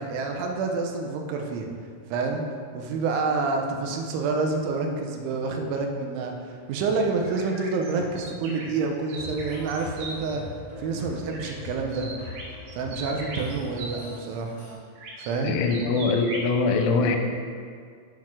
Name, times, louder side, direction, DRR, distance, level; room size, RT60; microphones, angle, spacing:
voice 1, 0.0-1.7 2.1-2.4 2.7-10.4 10.8-12.1 12.7-14.5 15.3-15.5, right 4 dB, 85° right, 3 dB, 3.2 m, -28 dB
sound 1, 7.2-10.1 11.3-11.7 11.9-14.0 15.0-16.5, right 2 dB, 65° right, 3.7 m, -39 dB
sound 2, 9.2-14.7, left 3 dB, 35° left, 2.7 m, -41 dB
voice 2, 15.4-17.2, left 4 dB, 90° left, 4 dB, 3.2 m, -23 dB
7.6 x 7.4 x 6.1 m, 2.1 s
omnidirectional pair, 5.6 m